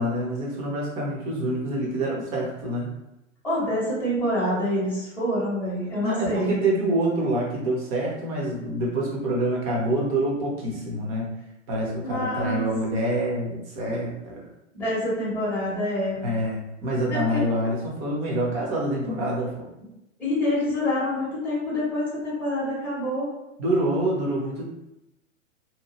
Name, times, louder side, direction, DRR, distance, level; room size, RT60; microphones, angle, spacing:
voice 1, 0.0-2.9 6.0-11.3 11.7-14.5 16.2-19.7 23.6-24.6, right 1 dB, 25° right, -3 dB, 0.7 m, -26 dB
voice 2, 3.4-6.6 12.0-13.0 14.7-16.3 17.1-17.4 20.2-23.3, left 1 dB, 5° left, -9 dB, 0.8 m, -26 dB
2.8 x 2.2 x 3.0 m, 0.90 s
figure-of-eight pair, 115°, 40 cm